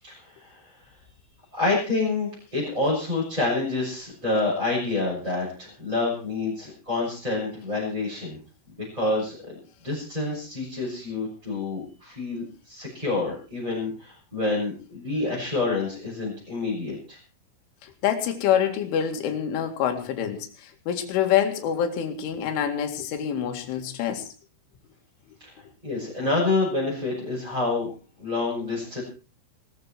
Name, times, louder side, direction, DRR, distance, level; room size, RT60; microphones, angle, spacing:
voice 1, 0.0-0.6 1.5-8.4 8.8-9.4 9.8-17.2 25.8-27.9 28.2-29.0, left 3 dB, 5° right, -6 dB, 6.9 m, -27 dB
voice 2, 17.8-24.3, left 9 dB, 75° left, 5 dB, 4.5 m, -26 dB
19.5 x 14.5 x 4.5 m, 0.36 s
omnidirectional pair, 5.8 m